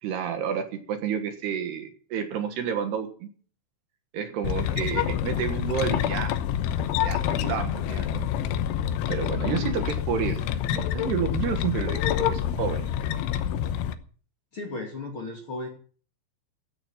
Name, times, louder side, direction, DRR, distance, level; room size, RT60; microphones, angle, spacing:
voice 1, 0.0-3.3 4.1-6.4 7.0-8.3 9.1-10.4 10.7-13.1, right 8 dB, 65° right, 7 dB, 3.2 m, -30 dB
sound 1, 4.4-13.9, left 10 dB, 80° left, 3.4 m, -27 dB
voice 2, 9.4-9.9 14.5-15.7, left 3 dB, 35° left, 1 dB, 2.5 m, -35 dB
16.0 x 10.0 x 5.9 m, 0.43 s
omnidirectional pair, 5.5 m